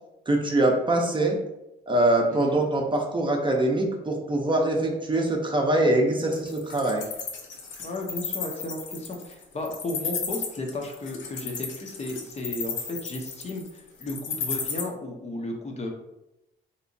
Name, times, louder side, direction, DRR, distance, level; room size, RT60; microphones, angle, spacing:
voice 1, 0.3-1.4 1.9-7.0, right 1 dB, 25° right, 0 dB, 0.6 m, -23 dB
Wild animals, 6.2-14.8, left 6 dB, 70° left, 0.7 m, -33 dB
voice 2, 7.8-15.9, left 2 dB, 35° left, 1 dB, 0.6 m, -34 dB
3.3 x 2.9 x 2.6 m, 0.91 s
cardioid pair, 90°, 20 cm